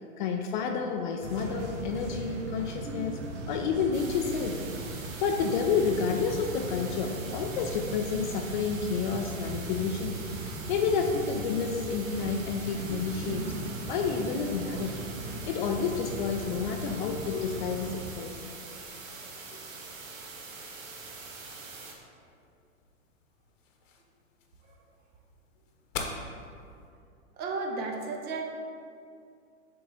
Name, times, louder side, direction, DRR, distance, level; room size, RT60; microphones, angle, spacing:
voice 1, 0.2-3.2 3.5-4.6 5.2-10.2 10.7-13.4 13.9-14.9 15.5-18.3, left 5 dB, 40° left, 3 dB, 0.4 m, -30 dB
sound 1, 1.2-18.1, right 2 dB, 55° right, 1.0 m, -39 dB
sound 2, 3.9-21.9, right 4 dB, 70° right, 1.3 m, -44 dB
sound 3, 21.0-26.9, left 4 dB, 65° left, 1.0 m, -44 dB
voice 2, 27.3-28.4, right 3 dB, 25° right, 2 dB, 0.6 m, -33 dB
6.8 x 3.9 x 3.6 m, 2.4 s
hypercardioid pair, 115°, 40 cm